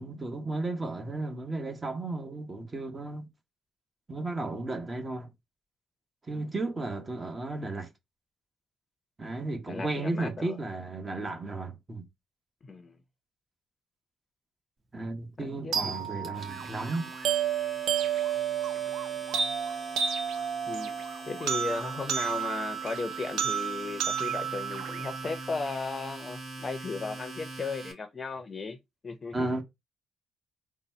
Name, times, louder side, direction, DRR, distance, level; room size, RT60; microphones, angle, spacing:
voice 1, 0.0-3.3 4.1-5.3 6.3-7.9 9.2-12.0 14.9-17.1 29.3-29.6, right 2 dB, 25° right, 1.0 m, -34 dB
voice 2, 9.7-10.6 12.6-13.0 15.4-16.0 20.7-20.9 21.3-28.8 29.0-29.5, left 4 dB, 35° left, 0.7 m, -36 dB
sound 1, 15.7-25.7, right 8 dB, 85° right, 0.6 m, -32 dB
Domestic sounds home sounds, 16.0-27.9, right 2 dB, 45° right, 1.5 m, -42 dB
4.0 x 2.2 x 4.3 m
cardioid pair, 90°, 0 cm